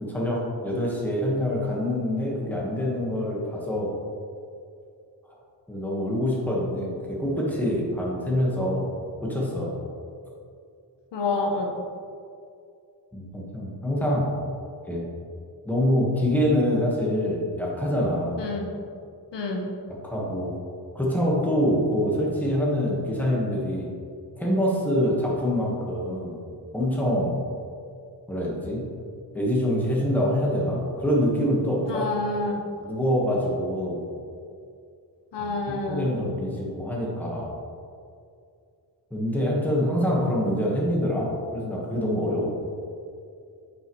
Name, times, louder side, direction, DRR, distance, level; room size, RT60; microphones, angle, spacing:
voice 1, 0.0-3.9 5.7-8.9 9.2-9.7 13.1-14.3 14.8-15.0 15.6-18.4 20.0-20.5 20.9-23.9 24.4-26.4 26.7-27.3 28.3-28.8 29.3-32.1 32.8-34.0 35.4-37.5 39.1-42.6, equal, 5° left, -4 dB, 1.3 m, -25 dB
voice 2, 11.1-11.8 18.4-18.7 19.3-19.7 31.9-32.6 35.3-36.1, left 3 dB, 80° left, 1 dB, 1.0 m, -28 dB
8.8 x 5.5 x 3.1 m, 2.4 s
wide cardioid pair, 140°, 42 cm